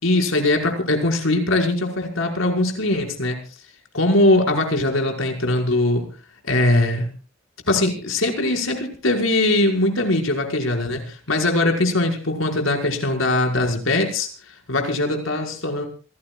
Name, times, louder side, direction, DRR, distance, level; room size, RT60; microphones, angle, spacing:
voice 1, 0.0-3.4 3.9-6.1 6.4-7.1 7.7-14.3 14.7-15.9, left 2 dB, 80° left, 2 dB, 5.4 m, -21 dB
27.5 x 18.5 x 2.4 m, 0.36 s
head